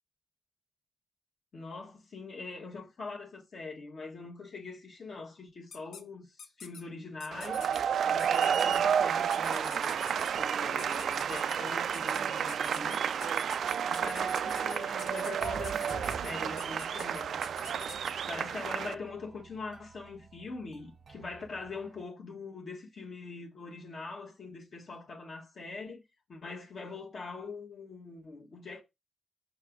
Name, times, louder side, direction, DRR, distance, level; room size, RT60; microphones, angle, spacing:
voice 1, 1.5-7.6 8.1-13.2 13.7-17.4 18.3-26.0 26.3-28.8, left 3 dB, 45° left, 1.5 m, -43 dB
sound 1, 5.7-6.0 6.4-6.8 7.2-7.8 8.2-8.8 9.3-10.3 10.8-11.6 11.9-12.2 12.5-18.1, left 6 dB, 80° left, 1.0 m, -47 dB
sound 2, 7.3-18.9, right 8 dB, 65° right, 0.3 m, -31 dB
sound 3, 15.4-22.0, right 5 dB, 40° right, 0.7 m, -49 dB
6.0 x 4.7 x 3.6 m
wide cardioid pair, 165°, 0 cm